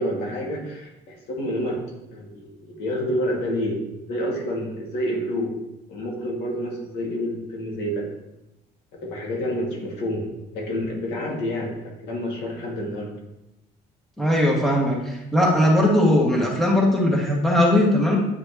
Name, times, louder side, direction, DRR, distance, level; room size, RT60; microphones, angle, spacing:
voice 1, 0.0-1.8 2.1-3.8 4.1-5.5 5.9-8.1 9.1-13.1, equal, 80° left, -2 dB, 2.1 m, -28 dB
voice 2, 14.2-18.2, left 1 dB, ahead, -3 dB, 1.9 m, -19 dB
9.5 x 5.0 x 3.0 m, 0.91 s
cardioid pair, 110°, 17 cm